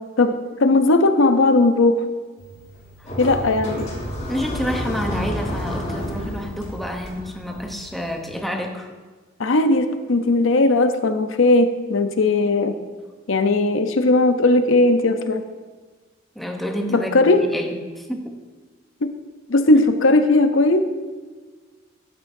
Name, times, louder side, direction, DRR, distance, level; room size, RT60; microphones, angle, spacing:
voice 1, 0.2-2.1 3.2-3.9 9.4-12.8 13.3-15.4 16.9-17.4 19.0-19.2 19.5-20.8, left 2 dB, 80° left, 8 dB, 0.7 m, -17 dB
sound 1, 2.4-8.3, equal, 35° left, 2.3 m, -31 dB
voice 2, 4.3-8.9 16.3-18.4, equal, ahead, 2 dB, 0.8 m, -29 dB
12.0 x 8.6 x 2.7 m, 1.4 s
head